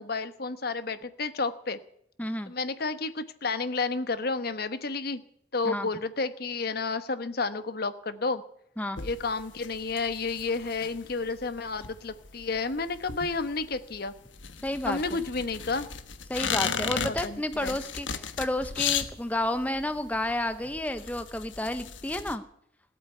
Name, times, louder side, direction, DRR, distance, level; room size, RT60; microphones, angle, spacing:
voice 1, 0.0-1.8 2.5-5.2 5.5-8.4 9.0-14.1 14.8-15.9 17.1-17.8, left 4 dB, 55° left, 11 dB, 1.1 m, -31 dB
voice 2, 2.2-2.5 5.6-5.9 8.8-9.0 14.6-15.2 16.3-22.4, left 1 dB, 10° left, 9 dB, 0.7 m, -31 dB
sound 1, 9.0-22.4, left 7 dB, 90° left, 1.3 m, -36 dB
18.0 x 8.3 x 9.3 m, 0.73 s
head